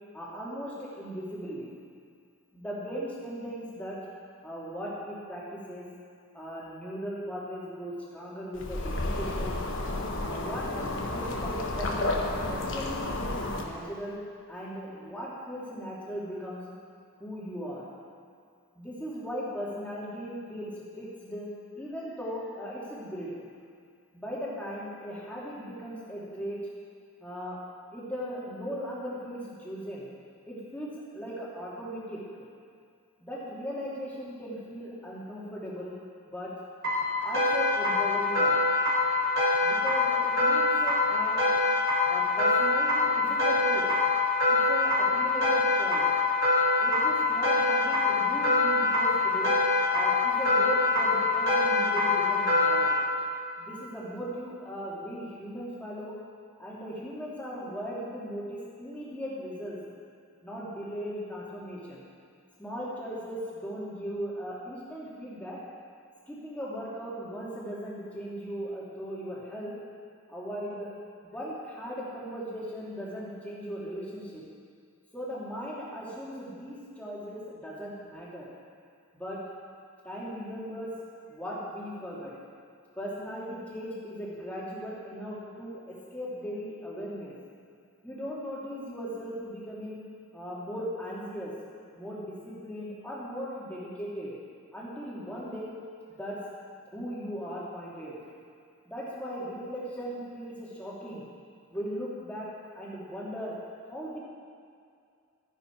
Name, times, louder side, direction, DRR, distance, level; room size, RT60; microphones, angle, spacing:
voice 1, 0.1-1.7 2.5-4.0 4.4-5.9 6.3-9.5 10.2-14.2 14.5-16.6 17.2-17.8 18.7-20.7 21.0-21.5 21.8-23.3 24.1-26.6 27.2-27.6 27.9-30.1 30.5-32.4 33.2-35.9 36.3-36.5 37.2-38.6 39.6-41.6 42.1-43.9 44.5-46.1 46.8-49.5 49.9-52.9 53.6-56.1 56.6-59.9 60.4-62.0 62.6-65.6 66.3-69.7 70.3-70.9 71.2-74.4 75.1-78.5 79.1-79.4 80.0-80.9 81.3-82.3 83.0-87.4 88.0-90.0 90.3-91.5 91.9-94.3 94.7-95.7 96.1-96.4 96.9-98.2 98.9-101.3 101.7-102.5 102.7-103.6 103.9-104.2, equal, 5° left, -7 dB, 2.6 m, -38 dB
sound 1, 8.6-13.6, left 2 dB, 60° left, 1.3 m, -31 dB
sound 2, 36.8-53.0, left 3 dB, 60° right, 3.5 m, -25 dB
13.5 x 9.9 x 4.6 m, 2.3 s
head